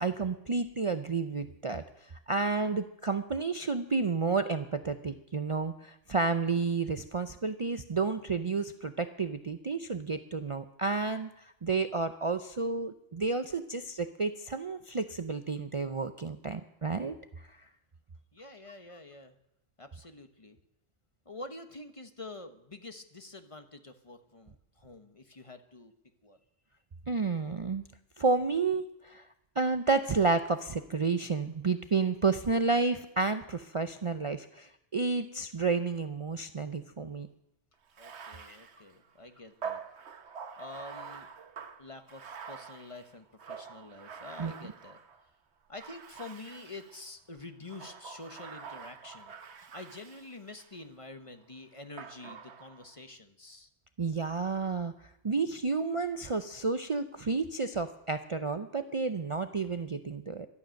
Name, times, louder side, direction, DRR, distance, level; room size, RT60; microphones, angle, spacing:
voice 1, 0.0-17.6 27.1-27.8 28.2-29.2 29.6-37.3 38.5-38.6 44.4-44.5 54.0-54.9 55.2-60.5, right 4 dB, 35° right, 9 dB, 0.6 m, -31 dB
voice 2, 18.3-19.4 19.8-20.6 21.2-25.9 26.2-26.4 38.0-39.8 40.6-41.3 41.8-45.0 45.7-53.7, left 2 dB, 30° left, 8 dB, 1.1 m, -47 dB
Bathtub (filling or washing), 37.9-45.2 45.8-47.1 47.6-50.8 52.0-52.9, right 6 dB, 85° right, 1.3 m, -46 dB
17.0 x 12.0 x 6.5 m, 0.81 s
omnidirectional pair, 1.1 m